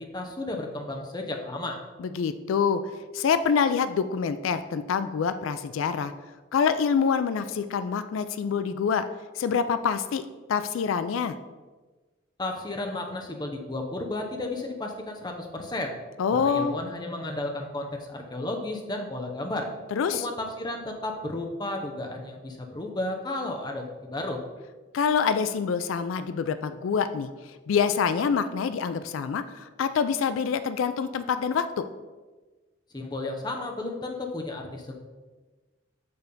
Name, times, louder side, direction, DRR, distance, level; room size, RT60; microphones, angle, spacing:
voice 1, 0.0-1.8 12.4-15.9 16.4-19.7 20.1-24.4 32.9-34.9, left 2 dB, 20° left, 2 dB, 0.7 m, -33 dB
voice 2, 2.0-2.8 3.1-6.1 6.5-9.0 9.3-11.4 16.2-16.8 19.9-20.3 24.9-31.8, left 6 dB, 85° left, 11 dB, 0.3 m, -26 dB
6.9 x 3.4 x 5.2 m, 1.3 s
head